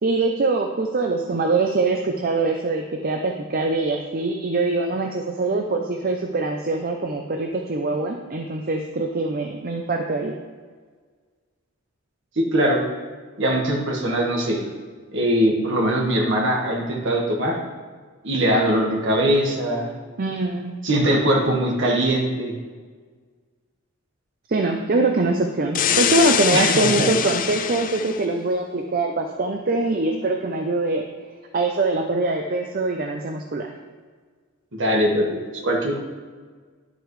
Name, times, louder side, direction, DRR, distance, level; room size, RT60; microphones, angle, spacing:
voice 1, 0.0-10.3 20.2-20.8 24.5-31.1 31.5-33.7, right 3 dB, 40° right, 3 dB, 0.6 m, -23 dB
voice 2, 12.3-12.8 13.4-14.6 15.1-17.6 18.2-19.9 20.8-22.6 26.5-27.1 34.7-36.0, right 1 dB, 60° right, 0 dB, 1.6 m, -21 dB
sound 1, 25.7-28.2, left 8 dB, 40° left, 0.5 m, -23 dB
10.5 x 7.9 x 3.2 m, 1.5 s
head